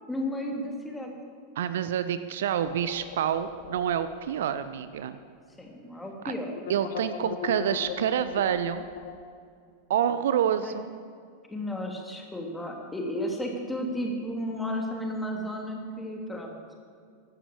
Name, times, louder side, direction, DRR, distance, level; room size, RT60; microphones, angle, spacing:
voice 1, 0.1-1.1 5.6-6.5 10.6-10.7 11.5-16.6, equal, 5° left, 0 dB, 2.9 m, -33 dB
voice 2, 1.6-5.2 6.2-6.3 6.7-8.8 9.9-10.9, right 9 dB, 60° right, 12 dB, 0.6 m, -27 dB
sound 1, 2.6-5.2 5.4-5.5 6.5-9.2, left 8 dB, 55° left, 1.2 m, -39 dB
15.5 x 12.5 x 7.3 m, 2.2 s
figure-of-eight pair, 90°, 0 cm